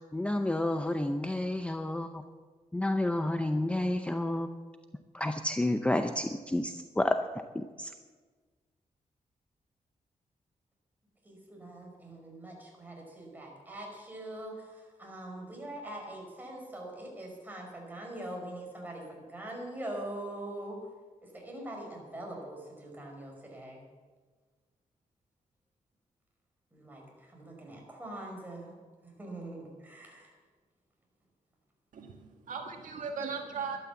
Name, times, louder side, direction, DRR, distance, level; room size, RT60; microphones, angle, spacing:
voice 1, 0.1-2.2 2.7-4.5 5.1-7.2 7.6-7.9, left 1 dB, 10° left, 7 dB, 0.6 m, -30 dB
voice 2, 11.2-20.8 21.2-23.8 26.7-28.7 29.0-30.3, right 1 dB, 15° right, 0 dB, 5.0 m, -43 dB
voice 3, 31.9-33.8, right 5 dB, 80° right, 3 dB, 1.7 m, -38 dB
12.0 x 12.0 x 7.1 m, 1.4 s
wide cardioid pair, 110°, 13 cm